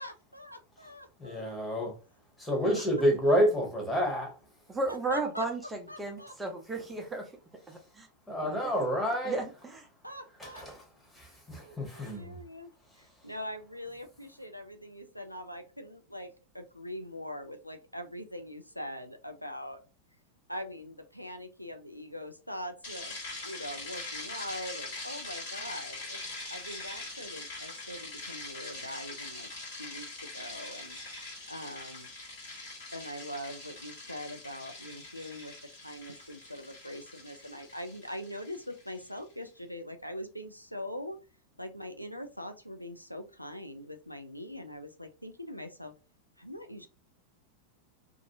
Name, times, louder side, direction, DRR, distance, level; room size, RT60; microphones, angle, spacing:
voice 1, 0.0-1.6 2.5-2.8 4.9-5.5 5.9-6.3 10.0-10.6 11.6-12.7 13.0-19.8 20.5-23.2 23.4-26.2 26.5-29.5 29.8-31.0 31.5-32.1 32.9-41.2 41.6-45.9 46.4-46.9, equal, 90° left, 0.3 m, -42 dB
voice 2, 1.2-1.9 2.4-4.4 7.7-7.8 8.3-9.4 10.4-12.4 12.9-13.3, equal, 5° left, 1.0 m, -29 dB
voice 3, 4.7-7.3 7.7-8.1 8.4-8.7 9.3-9.8, right 2 dB, 10° right, 0.5 m, -34 dB
sound 1, 22.8-39.1, left 2 dB, 55° left, 1.4 m, -43 dB
2.5 x 2.3 x 2.7 m
figure-of-eight pair, 90°, 0 cm